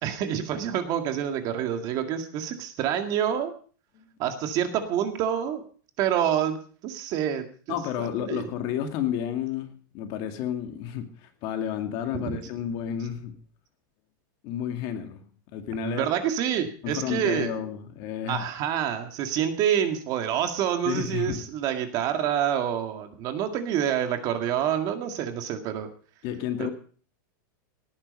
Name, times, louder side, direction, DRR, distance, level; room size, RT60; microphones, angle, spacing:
voice 1, 0.0-3.5 4.2-5.6 6.0-6.6 6.8-8.5 12.1-12.4 15.8-17.5 18.3-25.9 26.6-26.7, right 9 dB, 35° right, 7 dB, 2.0 m, -27 dB
voice 2, 7.7-13.3 14.4-16.1 16.8-18.5 20.9-21.4 26.2-26.7, left 9 dB, 40° left, 6 dB, 2.3 m, -31 dB
18.5 x 9.8 x 5.4 m, 0.42 s
supercardioid pair, 155°, 11 cm